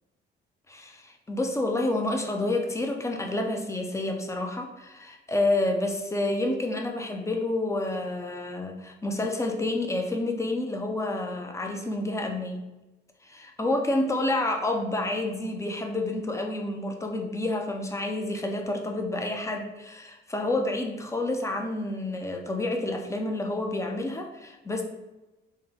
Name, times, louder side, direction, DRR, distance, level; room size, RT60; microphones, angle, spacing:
voice 1, 0.7-12.6 13.2-24.8, left 2 dB, 15° left, 3 dB, 0.6 m, -29 dB
3.6 x 2.2 x 4.2 m, 1.0 s
cardioid pair, 90°, 20 cm